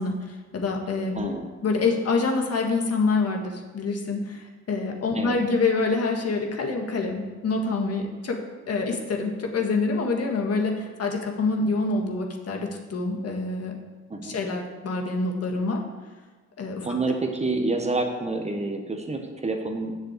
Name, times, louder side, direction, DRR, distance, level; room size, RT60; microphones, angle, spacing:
voice 1, 0.0-1.3 1.6-8.4 8.7-13.7 14.2-15.8 16.6-16.9, left 3 dB, 55° left, 2 dB, 1.8 m, -26 dB
voice 2, 1.1-1.5 5.1-5.4 14.1-14.3 16.8-19.9, right 3 dB, 20° right, 4 dB, 1.3 m, -28 dB
7.8 x 6.7 x 8.2 m, 1.3 s
cardioid pair, 90°, 30 cm